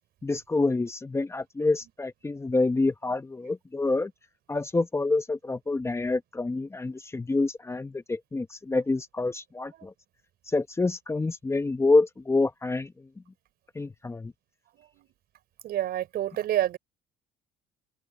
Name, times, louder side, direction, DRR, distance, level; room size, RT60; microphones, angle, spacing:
voice 1, 0.2-4.1 4.5-9.9 10.5-12.9 13.7-14.3, left 3 dB, 15° left, 0.9 m, -27 dB
voice 2, 14.7-15.1 15.6-16.8, right 12 dB, 70° right, 4.4 m, -28 dB
open air
cardioid pair, 110°, 17 cm